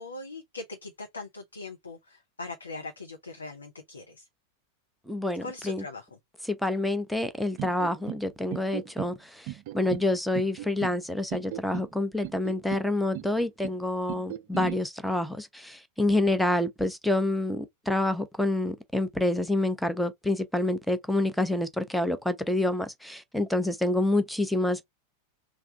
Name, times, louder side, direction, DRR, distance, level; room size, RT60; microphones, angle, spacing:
voice 1, 0.0-4.3 5.4-6.1, left 3 dB, 75° left, 0.8 m, -41 dB
voice 2, 5.1-5.8 6.4-24.8, left 1 dB, ahead, 0.6 m, -27 dB
sound 1, 7.6-8.2 8.5-9.1 9.5-10.1 10.3-11.0 11.3-11.9 12.2-12.9 13.1-13.8 14.1-14.8, right 15 dB, 50° right, 0.4 m, -37 dB
3.4 x 2.3 x 3.6 m
figure-of-eight pair, 90°, 0 cm